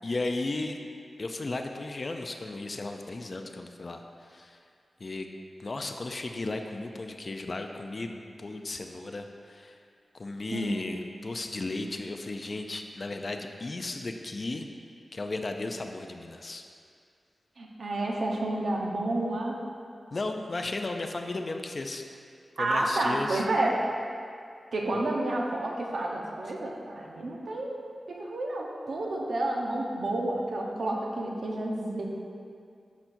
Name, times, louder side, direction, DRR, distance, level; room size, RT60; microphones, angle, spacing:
voice 1, 0.0-0.8 1.2-4.6 5.0-5.3 5.6-9.8 10.1-14.7 15.1-16.6 20.1-22.1 22.6-23.5, left 2 dB, 40° left, 5 dB, 0.4 m, -35 dB
voice 2, 17.6-19.6 22.6-23.8 24.7-27.8 28.1-32.0, right 1 dB, 70° right, -1 dB, 0.9 m, -30 dB
10.0 x 5.8 x 2.7 m, 2.3 s
wide cardioid pair, 125°, 0 cm